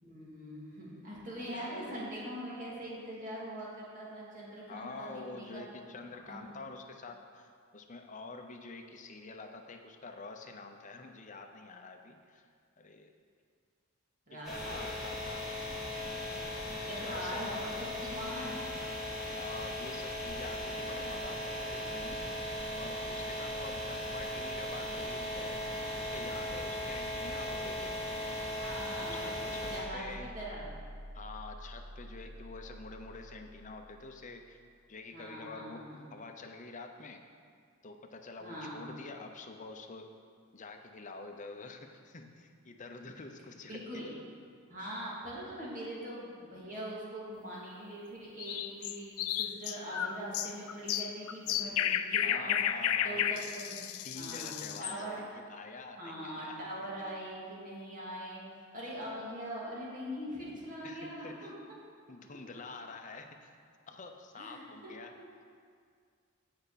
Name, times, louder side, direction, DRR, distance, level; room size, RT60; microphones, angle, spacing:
voice 1, 0.0-5.5 6.3-6.4 14.3-14.9 16.6-17.7 18.0-18.7 28.6-30.1 30.3-30.7 35.1-36.0 38.4-38.9 43.7-44.1 44.7-52.6 53.0-53.8 54.1-55.2 56.0-61.8 64.4-65.3, equal, 40° right, -6 dB, 2.5 m, -42 dB
voice 2, 1.4-2.3 4.7-12.5 12.8-13.1 14.3-15.5 17.0-17.8 19.3-22.5 22.7-28.0 29.0-30.4 31.1-34.6 34.9-37.2 37.8-40.1 40.5-44.0 52.2-53.4 54.0-56.6 60.8-61.5 62.1-63.5 63.9-65.1, left 3 dB, 35° left, 4 dB, 0.7 m, -47 dB
sound 1, 14.4-29.8, left 1 dB, ahead, 2.9 m, -38 dB
sound 2, 29.6-34.7, equal, 85° right, 0.8 m, -49 dB
sound 3, 48.4-55.0, left 10 dB, 80° left, 0.4 m, -33 dB
16.0 x 5.6 x 4.1 m, 2.1 s
head